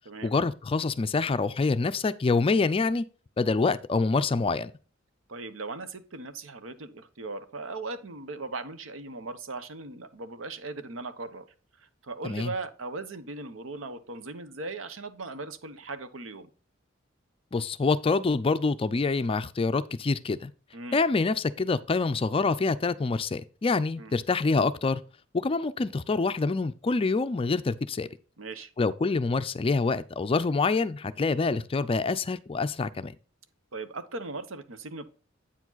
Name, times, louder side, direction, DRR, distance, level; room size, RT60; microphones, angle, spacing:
voice 1, 0.2-3.0 3.4-4.7 12.2-12.5 17.5-20.5 20.9-25.0 25.4-28.1 28.8-33.1, left 3 dB, 30° left, 0.4 m, -26 dB
voice 2, 5.3-11.4 11.8-16.5 20.7-21.0 24.0-24.1 28.4-28.7 33.7-35.1, right 3 dB, 80° right, 0.9 m, -38 dB
8.6 x 4.9 x 3.9 m
head